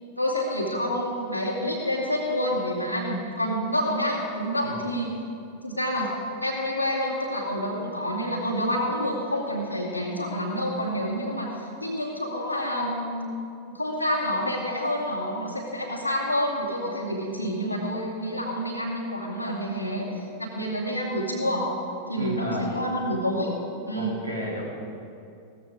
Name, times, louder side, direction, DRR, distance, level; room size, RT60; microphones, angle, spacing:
voice 1, 0.2-5.1 5.6-6.1 6.4-13.4 13.6-21.7 22.1-23.5 23.9-24.2, equal, 85° left, -3 dB, 2.3 m, -28 dB
voice 2, 22.1-22.7 23.9-24.6, equal, 80° right, -3 dB, 2.9 m, -32 dB
16.5 x 14.0 x 3.8 m, 2.5 s
figure-of-eight pair, 90°, 0 cm